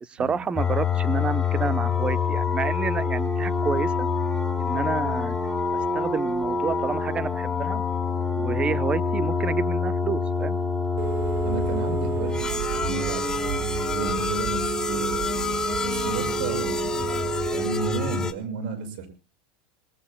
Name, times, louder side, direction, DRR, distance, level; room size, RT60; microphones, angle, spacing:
voice 1, 0.0-4.1 4.6-5.4 5.9-7.8 8.4-10.6, right 6 dB, 20° right, 16 dB, 0.8 m, -29 dB
sound 1, 0.6-18.3, left 5 dB, 15° left, 1.7 m, -26 dB
Telephone, 11.0-18.0, right 9 dB, 55° right, 1.0 m, -31 dB
voice 2, 11.4-15.3 15.8-19.1, right 5 dB, 75° right, 9 dB, 6.6 m, -33 dB
26.0 x 19.0 x 2.2 m, 0.33 s
supercardioid pair, 130°, 5 cm